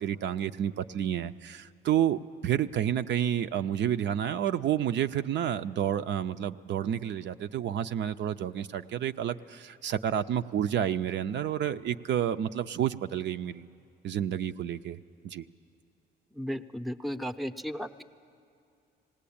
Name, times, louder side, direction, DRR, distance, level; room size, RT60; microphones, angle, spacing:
voice 1, 0.0-13.7 14.0-15.0 15.2-15.4, right 10 dB, 65° right, 9 dB, 0.5 m, -30 dB
voice 2, 16.4-18.0, equal, ahead, 11 dB, 0.6 m, -35 dB
18.5 x 18.5 x 8.6 m, 2.6 s
cardioid pair, 90°, 20 cm